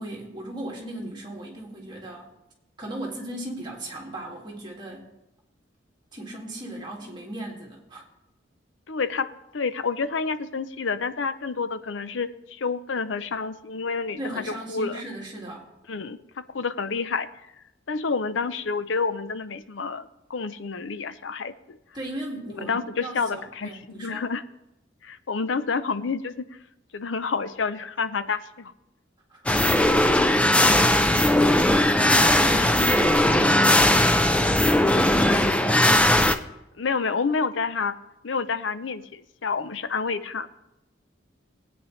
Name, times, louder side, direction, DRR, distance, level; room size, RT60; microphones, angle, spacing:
voice 1, 0.0-2.3 2.8-5.1 6.1-8.1 14.2-15.7 21.9-24.3 29.3-30.0 30.3-35.8, right 1 dB, 25° right, -2 dB, 2.2 m, -37 dB
voice 2, 8.9-14.4 14.7-15.0 15.9-17.3 17.9-21.8 22.6-24.4 25.0-26.5 26.9-28.7 36.8-38.0 38.2-40.5, left 4 dB, 75° left, 12 dB, 0.6 m, -29 dB
sound 1, 29.5-36.4, left 1 dB, 5° left, 0.4 m, -19 dB
18.5 x 9.1 x 3.2 m, 0.90 s
head